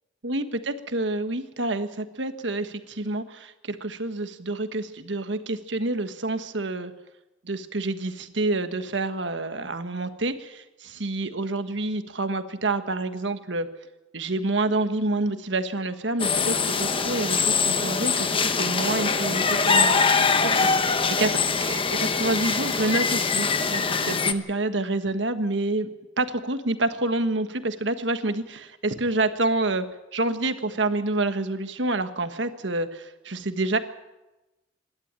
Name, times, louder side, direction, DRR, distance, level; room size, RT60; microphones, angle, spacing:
voice 1, 0.2-6.9 7.4-13.7 14.1-20.3 20.5-20.7 21.2-21.3 21.6-25.9 26.2-29.9 30.1-33.8, right 2 dB, 75° right, 9 dB, 1.5 m, -28 dB
sound 1, 16.2-24.3, left 5 dB, 30° left, 1.0 m, -23 dB
26.5 x 12.0 x 9.0 m, 1.0 s
head